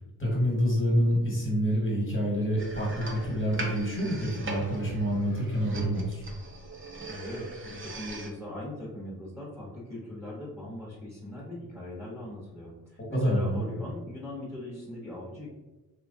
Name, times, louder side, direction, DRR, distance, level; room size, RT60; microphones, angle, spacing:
voice 1, 0.2-6.2 13.1-13.7, equal, 30° left, -4 dB, 1.4 m, -27 dB
sound 1, 2.6-8.3, right 2 dB, 30° right, 0.6 m, -40 dB
voice 2, 7.0-15.5, left 1 dB, ahead, -6 dB, 1.0 m, -40 dB
3.1 x 2.4 x 2.6 m, 1.1 s
cardioid pair, 75°, 43 cm